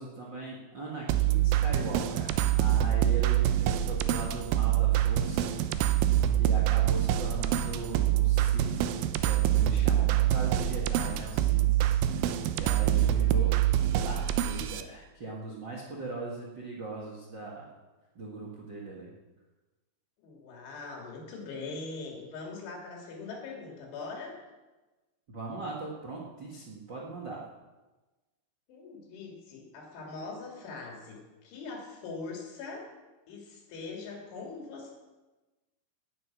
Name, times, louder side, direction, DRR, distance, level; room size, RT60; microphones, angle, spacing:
voice 1, 0.0-13.5 13.8-17.6 18.1-19.1 25.3-27.4, right 3 dB, 55° right, -2 dB, 1.2 m, -40 dB
sound 1, 1.1-14.8, right 12 dB, 80° right, 3.2 m, -25 dB
voice 2, 12.7-13.2 20.2-24.3 28.7-32.9 33.3-34.9, left 3 dB, 75° left, -1 dB, 5.3 m, -42 dB
18.5 x 11.0 x 6.3 m, 1.2 s
omnidirectional pair, 5.5 m